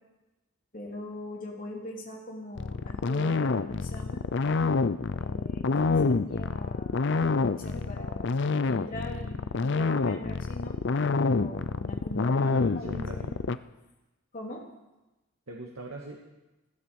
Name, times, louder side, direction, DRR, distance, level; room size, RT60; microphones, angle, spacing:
voice 1, 0.7-4.2 5.2-8.3 8.6-10.8 11.3-12.4 12.7-13.4 14.3-14.6, left 1 dB, 40° left, -2 dB, 3.2 m, -41 dB
sound 1, 2.6-13.6, left 4 dB, 55° left, 0.5 m, -27 dB
voice 2, 5.8-6.1 12.3-13.4 15.5-16.2, right 1 dB, 85° right, -1 dB, 1.8 m, -41 dB
15.0 x 13.5 x 7.0 m, 1.0 s
head